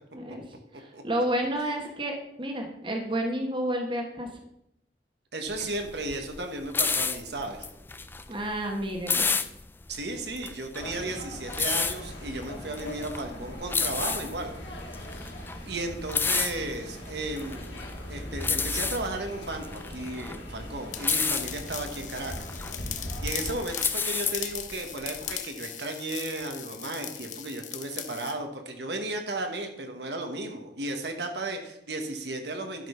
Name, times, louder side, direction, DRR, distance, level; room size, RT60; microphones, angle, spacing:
voice 1, 0.1-0.4 0.7-4.3 8.3-9.3, right 1 dB, 30° right, 3 dB, 1.2 m, -30 dB
voice 2, 5.3-7.7 9.9-14.5 15.6-17.8 18.1-22.6 23.2-32.9, right 2 dB, 70° right, 4 dB, 1.3 m, -34 dB
sound 1, 5.5-25.4, left 5 dB, 10° left, 0.3 m, -31 dB
sound 2, 10.8-23.6, equal, 80° left, 2.8 m, -40 dB
sound 3, 20.9-28.4, left 10 dB, 45° left, 0.7 m, -38 dB
12.0 x 5.1 x 5.6 m, 0.80 s
head